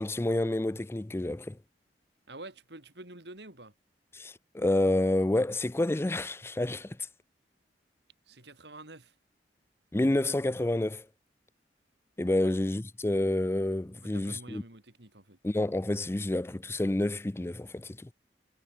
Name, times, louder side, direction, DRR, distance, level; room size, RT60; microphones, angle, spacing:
voice 1, 0.0-1.6 4.1-7.0 9.9-11.1 12.2-14.6 15.4-18.1, left 1 dB, 15° left, 0.5 m, -29 dB
voice 2, 2.3-3.7 8.3-9.1 12.4-12.5 14.0-15.4, right 2 dB, 70° right, 4.8 m, -48 dB
head